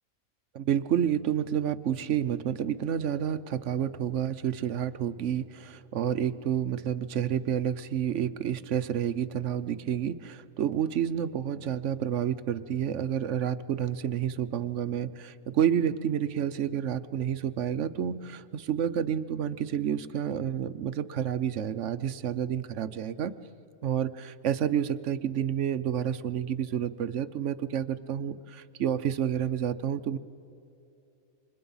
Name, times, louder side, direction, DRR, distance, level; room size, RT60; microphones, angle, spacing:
voice 1, 0.5-23.3 23.8-30.2, right 9 dB, 65° right, 13 dB, 1.0 m, -29 dB
28.0 x 26.0 x 5.5 m, 2.7 s
omnidirectional pair, 1.4 m